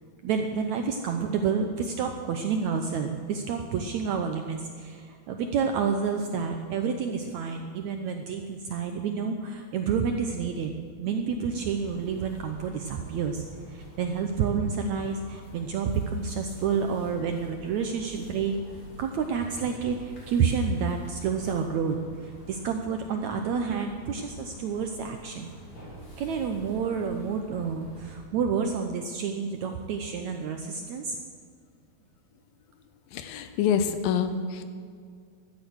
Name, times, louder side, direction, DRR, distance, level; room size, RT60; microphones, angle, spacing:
voice 1, 0.2-18.6 19.0-22.0 22.2-25.5 26.2-31.2, right 6 dB, 75° right, 5 dB, 1.7 m, -29 dB
sound 1, 11.5-28.2, right 1 dB, 30° left, 4.0 m, -46 dB
voice 2, 33.1-34.6, left 7 dB, 75° left, 10 dB, 2.6 m, -26 dB
16.0 x 12.5 x 6.4 m, 2.2 s
omnidirectional pair, 4.2 m